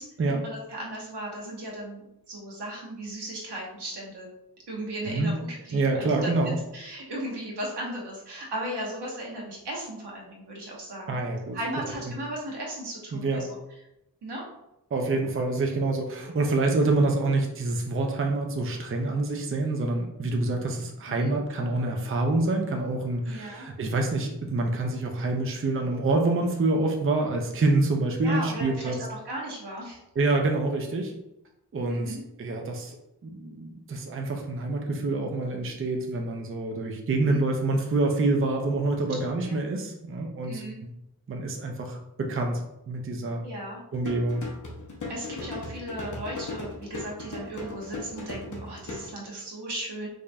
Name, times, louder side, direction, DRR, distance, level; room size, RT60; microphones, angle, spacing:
voice 1, 0.0-4.3 4.7-6.3 6.7-11.2 11.5-13.5 14.2-14.5 21.1-21.3 23.3-23.7 28.2-30.0 31.9-32.2 37.2-37.4 39.5-39.6 40.4-40.8 43.4-43.8 45.1-50.1, right 1 dB, 90° right, -3 dB, 1.1 m, -36 dB
voice 2, 5.7-6.6 11.1-11.6 13.1-13.5 14.9-29.0 30.2-31.1 31.7-33.0 33.2-40.9 41.3-43.4 43.9-44.4, right 2 dB, 35° right, 2 dB, 0.5 m, -27 dB
sound 1, 43.9-49.1, left 2 dB, 50° left, 0.9 m, -37 dB
4.9 x 2.6 x 2.2 m, 0.87 s
wide cardioid pair, 95°, 39 cm